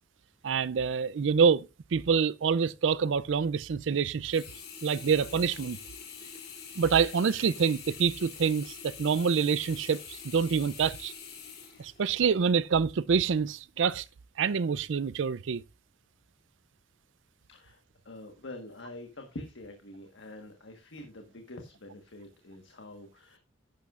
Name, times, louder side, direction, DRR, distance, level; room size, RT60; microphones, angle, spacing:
voice 1, 0.4-4.4 4.8-5.8 6.8-11.1 11.8-14.0 14.4-15.6, right 6 dB, 75° right, 0.4 m, -26 dB
Sink (filling or washing), 4.2-12.5 13.0-13.1, left 6 dB, 55° left, 2.9 m, -45 dB
voice 2, 17.5-23.4, left 1 dB, 75° left, 1.4 m, -46 dB
11.5 x 10.0 x 2.4 m
head